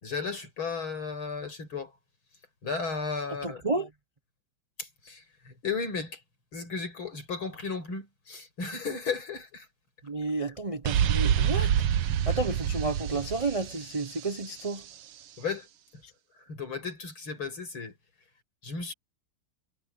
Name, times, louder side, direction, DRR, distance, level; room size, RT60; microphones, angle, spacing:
voice 1, 0.0-1.9 2.6-3.6 4.8-6.2 6.5-9.7 10.4-10.5 15.4-15.7 16.5-17.9 18.6-18.9, left 5 dB, 75° left, 6.4 m, -34 dB
voice 2, 3.4-3.9 10.1-11.7 12.3-14.8, right 3 dB, 45° right, 0.4 m, -31 dB
sound 1, 10.8-14.6, right 9 dB, 85° right, 1.9 m, -27 dB
omnidirectional pair, 2.3 m